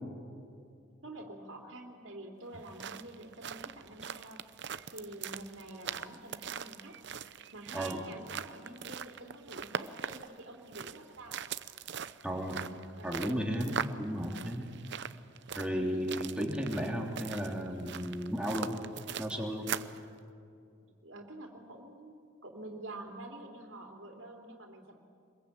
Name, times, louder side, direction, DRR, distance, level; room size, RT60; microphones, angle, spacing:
voice 1, 1.0-4.4 4.9-7.0 7.5-11.4 13.0-13.4 13.9-14.0 15.7-16.1 21.0-22.2 22.4-25.0, right 2 dB, 75° right, 1 dB, 3.3 m, -47 dB
sound 1, 2.5-20.0, right 7 dB, 60° right, 0.8 m, -41 dB
voice 2, 12.2-12.6 13.0-14.7 15.5-18.8 19.2-19.7, equal, 5° right, 0 dB, 3.3 m, -34 dB
26.0 x 22.0 x 8.8 m, 2.5 s
head